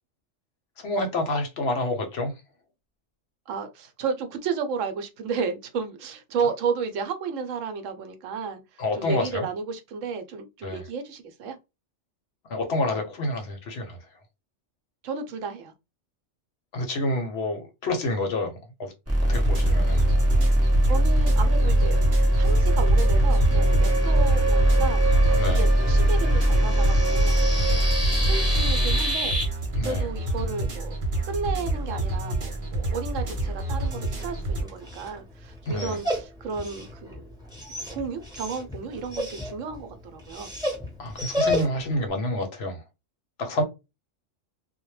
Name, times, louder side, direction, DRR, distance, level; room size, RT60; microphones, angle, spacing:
voice 1, 0.8-2.3 8.8-9.5 10.6-10.8 12.5-14.0 16.7-18.5 18.8-18.9 19.3-20.0 25.3-25.7 29.8-30.0 35.7-36.0 41.0-42.8 43.4-43.6, left 1 dB, 65° left, 0.8 m, -28 dB
voice 2, 3.5-8.6 8.9-11.6 15.0-15.7 20.4-20.6 20.9-22.0 22.4-29.4 29.8-31.0 31.3-37.3 37.9-40.5, right 5 dB, 85° right, 0.9 m, -33 dB
sound 1, 19.1-29.4, right 1 dB, 25° right, 0.3 m, -21 dB
sound 2, 19.3-34.6, right 2 dB, 45° right, 0.9 m, -28 dB
Dog, 33.7-42.0, left 1 dB, 5° right, 0.7 m, -33 dB
2.1 x 2.1 x 3.0 m
omnidirectional pair, 1.3 m